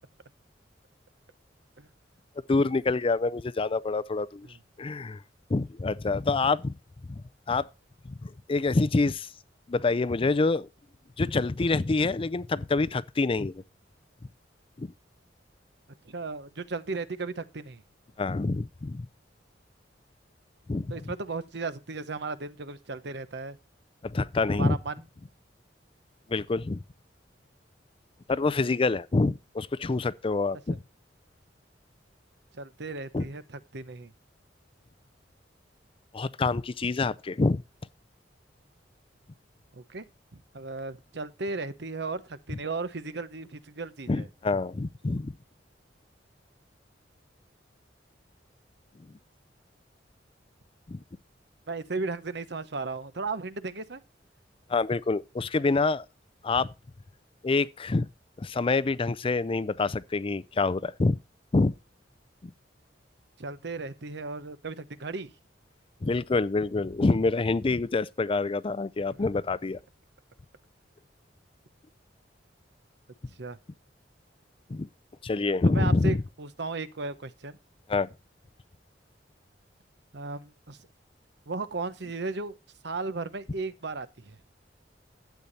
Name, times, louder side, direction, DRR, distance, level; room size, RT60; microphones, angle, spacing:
voice 1, 2.5-4.5 4.8-5.2 5.5-6.7 7.1-7.7 8.2-9.3 9.7-10.7 11.2-13.6 14.8-14.9 18.2-19.1 20.7-20.9 24.0-24.8 26.3-26.8 28.3-30.8 33.1-33.2 36.1-37.6 44.1-45.3 50.9-51.0 54.7-56.1 56.4-56.7 57.4-58.1 58.4-61.2 61.5-61.7 62.4-62.5 66.0-69.8 74.7-74.9 75.2-76.2 77.9-78.1, left 3 dB, 30° left, 0.4 m, -26 dB
voice 2, 16.0-17.8 20.9-23.6 24.5-25.0 32.6-34.1 39.7-40.0 40.3-44.3 51.7-54.0 63.4-65.3 69.1-69.2 73.4-73.6 75.6-77.6 80.1-80.8 81.5-82.6 82.8-84.4, right 3 dB, 65° right, 1.0 m, -35 dB
12.0 x 8.5 x 4.1 m
head